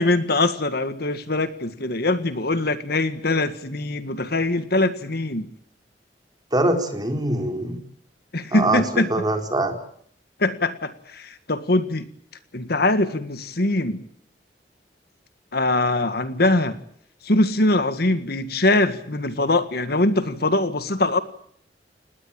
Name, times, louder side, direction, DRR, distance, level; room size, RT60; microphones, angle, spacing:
voice 1, 0.0-5.5 8.3-9.1 10.4-12.1 12.5-14.0 15.5-16.8 17.2-21.2, left 2 dB, 60° left, 11 dB, 1.8 m, -22 dB
voice 2, 6.5-7.8 8.5-9.8, right 1 dB, 25° right, 4 dB, 4.2 m, -23 dB
27.5 x 20.0 x 8.9 m, 0.64 s
head